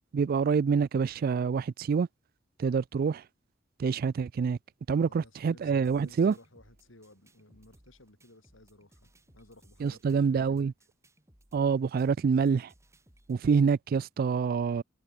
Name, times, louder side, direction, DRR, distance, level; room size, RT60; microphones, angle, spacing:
voice 1, 0.1-2.1 2.6-3.2 3.8-4.6 4.9-6.3 9.8-10.7 11.5-12.7 13.3-14.8, right 5 dB, 50° right, 0.3 m, -26 dB
voice 2, 5.0-10.7, left 1 dB, 90° left, 5.2 m, -57 dB
sound 1, 5.8-13.4, right 1 dB, 15° right, 3.9 m, -63 dB
head